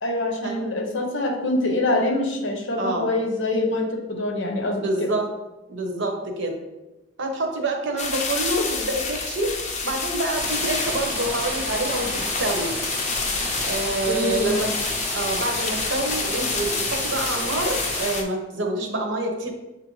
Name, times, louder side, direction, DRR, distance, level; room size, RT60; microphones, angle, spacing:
voice 1, 0.0-5.1 14.1-14.7, left 2 dB, 85° left, 3 dB, 0.8 m, -25 dB
voice 2, 2.8-3.1 4.7-5.3 5.7-6.6 7.2-9.6 9.8-12.8 13.6-14.7 15.1-19.5, right 2 dB, 70° right, 3 dB, 0.7 m, -27 dB
sound 1, 8.0-18.2, left 4 dB, 40° left, 0.5 m, -28 dB
sound 2, 10.3-18.1, right 1 dB, 10° right, 0.6 m, -32 dB
6.6 x 2.5 x 3.0 m, 1.0 s
head